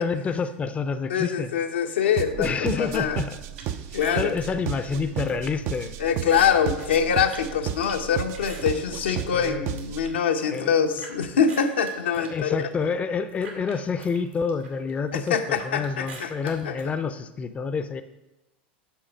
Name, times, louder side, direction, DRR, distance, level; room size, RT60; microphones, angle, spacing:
voice 1, 0.0-1.5 2.4-3.4 3.9-6.0 9.3-9.7 10.5-10.7 12.2-18.0, left 5 dB, 20° left, 10 dB, 0.5 m, -28 dB
voice 2, 1.1-2.5 2.8-3.2 3.9-4.3 6.0-12.7 15.1-16.7, left 7 dB, 80° left, 4 dB, 0.9 m, -24 dB
sound 1, 2.2-10.2, right 10 dB, 45° right, 0.5 m, -33 dB
sound 2, 3.6-9.2 9.6-11.1 11.5-16.9, right 4 dB, 90° right, 2.5 m, -46 dB
7.5 x 6.3 x 5.2 m, 1.0 s
hypercardioid pair, 95°, 6 cm